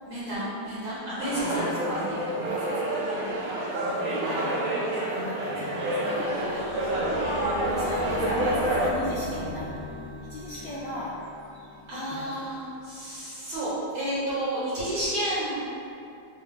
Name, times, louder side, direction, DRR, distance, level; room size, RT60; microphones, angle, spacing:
voice 1, 0.1-1.6 1.9-2.1 3.1-3.4 11.9-15.6, right 1 dB, 55° right, -10 dB, 1.3 m, -31 dB
sound 1, 1.2-8.9, right 1 dB, 75° right, 1.5 m, -28 dB
voice 2, 1.3-2.9 3.8-4.6 5.0-6.6 7.6-9.9 10.3-11.1 12.1-12.4, left 2 dB, 80° left, -8 dB, 1.0 m, -37 dB
sound 2, 6.2-12.9, left 1 dB, 40° left, 0.5 m, -40 dB
4.2 x 2.3 x 3.6 m, 2.6 s
omnidirectional pair, 2.4 m